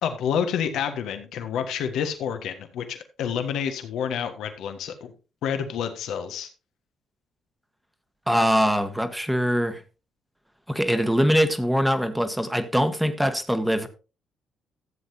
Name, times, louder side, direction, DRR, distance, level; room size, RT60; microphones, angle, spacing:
voice 1, 0.0-5.1 5.4-6.5, left 8 dB, 75° left, 1.4 m, -28 dB
voice 2, 8.3-9.8 10.7-13.9, equal, 5° right, 1.4 m, -22 dB
14.0 x 7.6 x 2.7 m
supercardioid pair, 65°, 0 cm